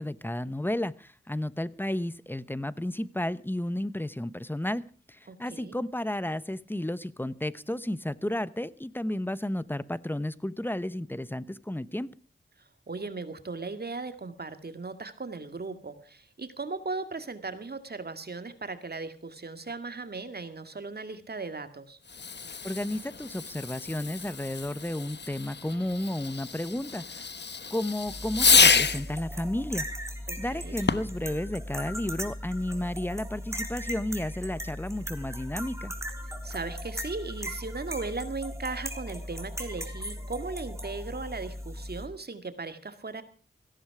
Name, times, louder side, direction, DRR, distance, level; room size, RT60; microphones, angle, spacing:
voice 1, 0.0-4.8 5.1-12.1 22.6-27.3 27.7-29.9 30.4-35.9, left 1 dB, 10° left, 17 dB, 0.9 m, -32 dB
voice 2, 5.3-5.8 12.9-22.0 30.3-30.8 36.4-43.2, right 3 dB, 50° right, 9 dB, 2.1 m, -37 dB
Fireworks, 22.0-29.1 30.8-31.3, left 5 dB, 60° left, 1.1 m, -27 dB
sound 1, 28.0-42.1, equal, 15° right, 3.5 m, -38 dB
17.5 x 15.5 x 4.9 m, 0.37 s
cardioid pair, 50°, 20 cm